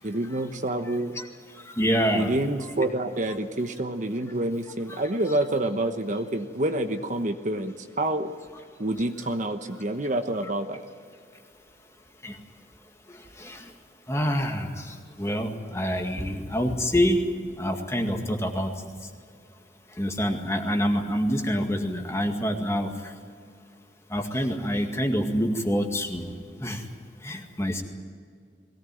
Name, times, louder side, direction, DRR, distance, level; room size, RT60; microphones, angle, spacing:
voice 1, 0.0-1.1 2.1-8.3 8.8-10.8, right 1 dB, 45° right, 7 dB, 1.1 m, -28 dB
voice 2, 0.9-1.2 1.8-2.3 4.9-5.0 5.3-5.5 10.4-10.5 12.2-12.3 13.4-13.6 14.1-14.8 15.2-17.2 17.6-18.7 20.0-22.9 24.1-26.3 26.6-26.8 27.2-27.8, equal, 15° left, 3 dB, 2.0 m, -26 dB
22.0 x 17.5 x 9.3 m, 2.1 s
head